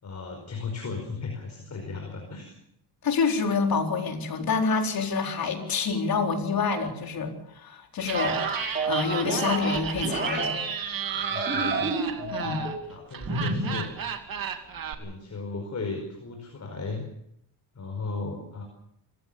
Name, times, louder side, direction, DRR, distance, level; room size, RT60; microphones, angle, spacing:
voice 1, 0.0-2.5 11.1-12.6 12.9-13.9 15.0-17.0 17.7-18.6, left 4 dB, 40° left, 3 dB, 5.1 m, -36 dB
voice 2, 3.0-8.4 8.9-10.6 12.3-12.6, left 5 dB, 55° left, 3 dB, 4.3 m, -27 dB
Laughter, 8.0-14.9, right 7 dB, 55° right, 2.6 m, -33 dB
sound 1, 8.1-10.5 11.0-12.9 13.2-13.8, right 2 dB, 25° right, 6.3 m, -30 dB
26.0 x 15.5 x 7.1 m, 0.76 s
cardioid pair, 110°, 42 cm